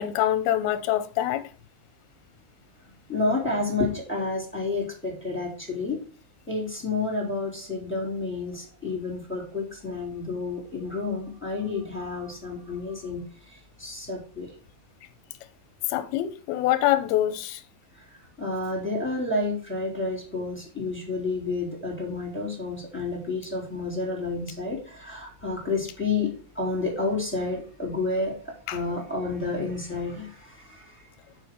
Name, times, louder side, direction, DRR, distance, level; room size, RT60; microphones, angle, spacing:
voice 1, 0.0-1.4 15.9-17.6 28.7-28.8, left 12 dB, 90° left, 2.6 m, -25 dB
voice 2, 3.1-6.0 6.5-14.5 17.9-18.0 18.4-31.0, left 3 dB, 5° left, 3.2 m, -30 dB
7.1 x 6.5 x 4.8 m
omnidirectional pair, 4.4 m